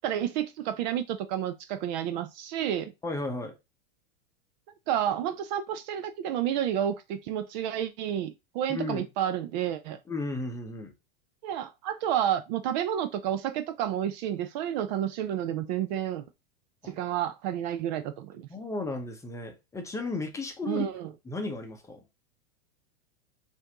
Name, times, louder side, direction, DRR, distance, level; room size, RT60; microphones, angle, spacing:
voice 1, 0.0-2.9 4.9-10.0 11.4-16.2 16.8-18.5 20.7-21.1, right 10 dB, 45° right, 0.4 m, -30 dB
voice 2, 3.0-3.5 8.7-9.0 10.1-10.9 16.8-16.9 18.5-20.9 21.2-22.0, left 2 dB, 10° left, 0.7 m, -34 dB
5.5 x 2.6 x 2.8 m
supercardioid pair, 135°, 32 cm